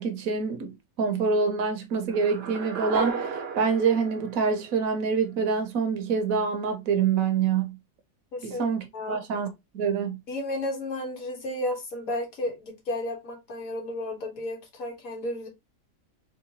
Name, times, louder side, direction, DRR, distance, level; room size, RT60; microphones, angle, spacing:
voice 1, 0.0-7.8 8.4-10.2, right 5 dB, 80° right, 1.2 m, -26 dB
sound 1, 2.1-5.2, right 6 dB, 60° right, 0.8 m, -34 dB
voice 2, 8.3-8.7 8.9-9.2 10.3-15.5, left 1 dB, 90° left, 1.7 m, -33 dB
3.8 x 3.0 x 2.8 m
omnidirectional pair, 1.4 m